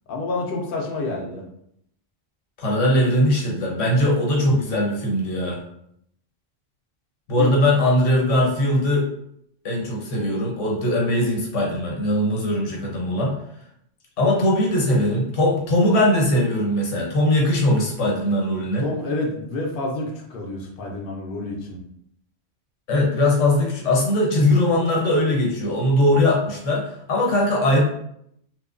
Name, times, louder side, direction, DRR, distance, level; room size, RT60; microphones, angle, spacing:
voice 1, 0.1-1.5 7.3-7.5 18.8-21.8, left 2 dB, 60° left, 0 dB, 0.7 m, -28 dB
voice 2, 2.6-5.6 7.3-9.1 9.6-13.3 14.2-18.9 22.9-27.8, left 1 dB, 85° left, -1 dB, 1.1 m, -20 dB
3.1 x 2.1 x 2.4 m, 0.73 s
omnidirectional pair, 1.2 m